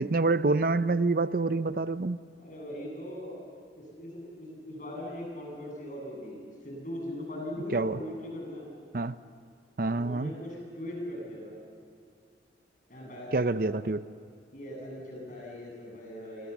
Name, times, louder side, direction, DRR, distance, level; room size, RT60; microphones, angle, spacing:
voice 1, 0.0-2.2 7.7-8.0 8.9-9.2 9.8-10.3 13.3-14.0, right 3 dB, 50° right, 14 dB, 0.6 m, -27 dB
voice 2, 2.4-3.4 3.8-8.7 9.8-11.6 12.9-13.7 14.5-16.5, equal, 45° left, -1 dB, 7.9 m, -40 dB
30.0 x 23.5 x 7.2 m, 2.2 s
head